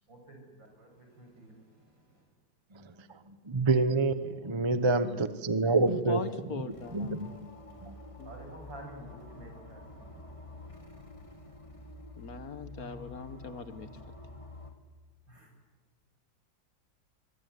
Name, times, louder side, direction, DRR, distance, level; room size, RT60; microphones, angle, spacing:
voice 1, 0.1-2.2 5.5-5.9 7.3-7.4 7.6-10.8 15.3-15.5, right 1 dB, 80° right, 2 dB, 8.1 m, -51 dB
voice 2, 3.1-7.5 7.8-7.9, right 3 dB, 20° right, 11 dB, 1.0 m, -28 dB
voice 3, 5.9-7.1 8.2-8.3 12.2-13.9, left 5 dB, 55° left, 11 dB, 1.6 m, -40 dB
sound 1, 6.7-14.7, left 2 dB, 15° left, 2.5 m, -48 dB
25.0 x 23.0 x 9.5 m, 1.3 s
omnidirectional pair, 2.0 m